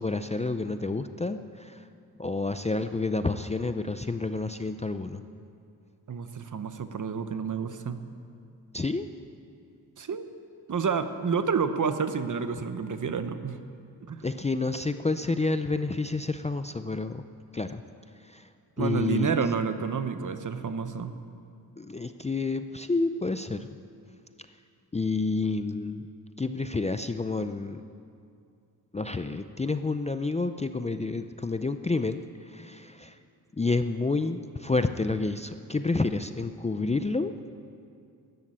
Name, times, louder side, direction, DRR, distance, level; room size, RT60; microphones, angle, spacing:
voice 1, 0.0-1.8 2.2-5.2 8.7-9.1 14.2-17.2 17.5-17.8 18.2-18.5 18.8-19.4 21.8-23.7 24.9-26.1 26.4-27.8 28.9-33.2 33.5-37.3, left 3 dB, 20° left, 9 dB, 0.4 m, -29 dB
voice 2, 6.1-8.0 10.0-10.3 10.7-13.6 14.1-14.2 18.8-21.1, right 5 dB, 50° right, 9 dB, 0.9 m, -29 dB
13.5 x 11.0 x 8.8 m, 2.4 s
wide cardioid pair, 125°, 39 cm